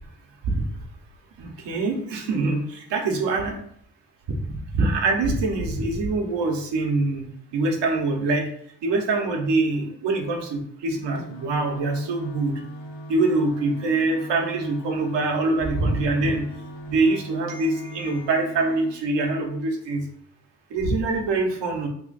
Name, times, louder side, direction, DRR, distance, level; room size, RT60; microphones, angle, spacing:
voice 1, 1.4-3.6 4.3-4.4 4.8-8.5 8.8-12.6 13.1-16.4 16.9-20.0 20.7-21.9, right 3 dB, 75° right, 3 dB, 0.9 m, -24 dB
sound 1, 10.9-18.9, equal, 75° left, 0.9 m, -39 dB
3.0 x 2.5 x 3.9 m, 0.66 s
supercardioid pair, 60°, 42 cm